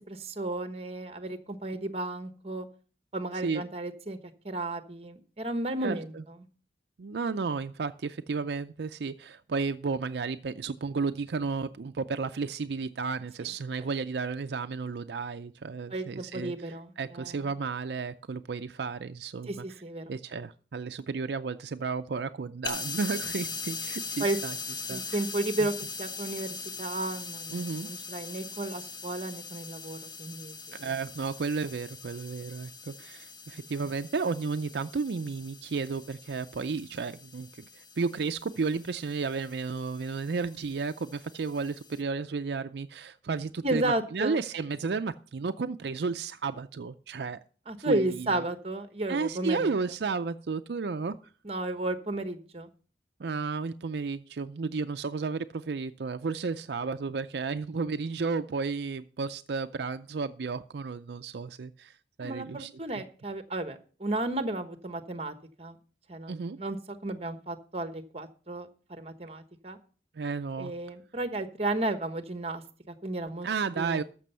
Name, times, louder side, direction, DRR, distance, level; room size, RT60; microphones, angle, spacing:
voice 1, 0.1-2.7 3.1-4.2 4.4-6.1 13.4-13.5 15.9-17.5 19.5-20.1 24.2-24.4 24.9-25.7 26.0-30.9 43.6-44.4 47.7-49.7 51.4-52.7 62.2-65.8 66.1-69.8 70.6-73.5 73.8-74.0, right 2 dB, 35° right, 9 dB, 1.1 m, -33 dB
voice 2, 5.8-6.2 7.0-19.6 20.1-24.5 24.9-25.2 25.6-25.7 27.5-27.9 30.8-47.4 47.9-48.4 49.1-51.2 53.2-63.0 66.3-66.6 70.1-70.7 73.4-74.0, right 4 dB, 70° right, 9 dB, 0.5 m, -33 dB
sound 1, 22.6-42.0, left 4 dB, 25° left, 0.8 m, -41 dB
13.5 x 6.1 x 5.5 m, 0.40 s
head